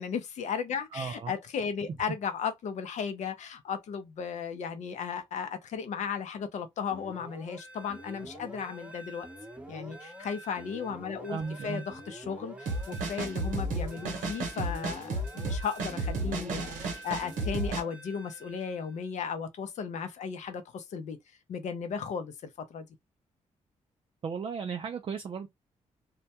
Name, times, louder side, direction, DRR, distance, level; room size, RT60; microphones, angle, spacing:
voice 1, 0.0-9.3 9.7-21.2 21.5-22.9, left 6 dB, 65° left, 0.6 m, -35 dB
voice 2, 0.9-1.3 11.3-11.8 24.2-25.5, right 5 dB, 40° right, 0.4 m, -35 dB
sound 1, 6.9-19.0, equal, 10° right, 0.7 m, -46 dB
sound 2, 12.7-17.8, right 2 dB, 90° right, 0.8 m, -32 dB
2.2 x 2.1 x 2.8 m
cardioid pair, 70°, 13 cm